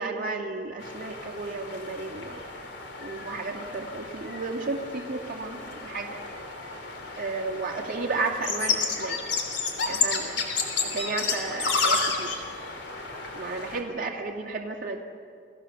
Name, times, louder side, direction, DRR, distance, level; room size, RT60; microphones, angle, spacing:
voice 1, 0.0-2.4 3.0-6.2 7.2-9.3 9.8-10.4 10.8-12.4 13.3-15.0, right 3 dB, 45° right, 0 dB, 2.3 m, -33 dB
sound 1, 0.8-13.8, left 4 dB, 65° left, 3.3 m, -31 dB
29.5 x 19.0 x 7.0 m, 2.3 s
head